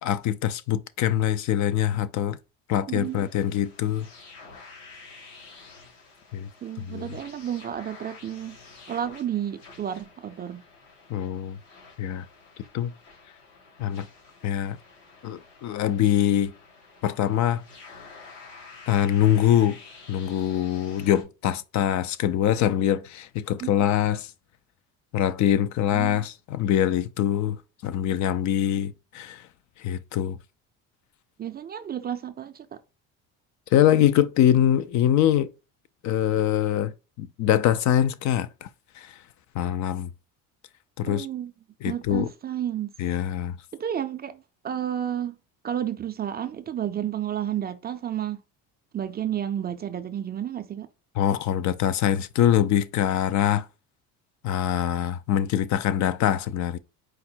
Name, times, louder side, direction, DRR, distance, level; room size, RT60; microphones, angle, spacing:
voice 1, 0.0-2.4 2.7-4.1 6.3-6.5 6.9-7.1 11.1-11.6 12.0-12.3 12.7-12.9 13.8-14.1 14.4-14.8 15.2-16.5 17.0-17.6 18.9-19.8 20.1-24.3 25.1-29.5 29.8-30.4 33.7-35.5 36.0-38.7 39.0-39.1 39.5-40.1 41.0-41.3 41.8-42.3 43.0-43.6 51.2-53.7 54.4-56.8, left 11 dB, 55° left, 0.4 m, -23 dB
voice 2, 2.9-3.2 6.6-8.6 8.9-10.6 23.6-23.7 25.9-26.2 28.7-28.8 31.4-32.8 41.1-41.5 41.8-42.9 43.7-45.4 45.6-48.4 48.9-50.9, right 10 dB, 30° right, 0.4 m, -31 dB
sound 1, 3.0-21.2, left 4 dB, 90° left, 2.2 m, -49 dB
4.6 x 2.1 x 4.3 m
cardioid pair, 115°, 35 cm